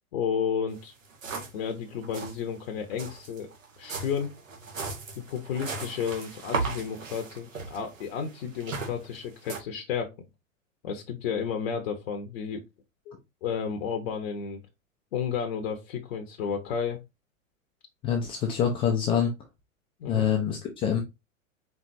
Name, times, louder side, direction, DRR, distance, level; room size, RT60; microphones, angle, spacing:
voice 1, 0.1-0.9 1.5-3.5 3.8-4.3 5.2-10.2 10.8-12.6 13.1-13.2 13.4-14.6 15.1-17.0 20.0-20.3, left 7 dB, 45° left, 0.8 m, -32 dB
sound 1, 0.7-0.8 1.0-1.7 1.9-2.4 2.9-9.6, right 4 dB, 70° right, 1.5 m, -36 dB
voice 2, 18.0-19.3 20.1-21.0, left 8 dB, 15° left, 0.4 m, -25 dB
4.6 x 3.6 x 2.6 m
figure-of-eight pair, 100°, 41 cm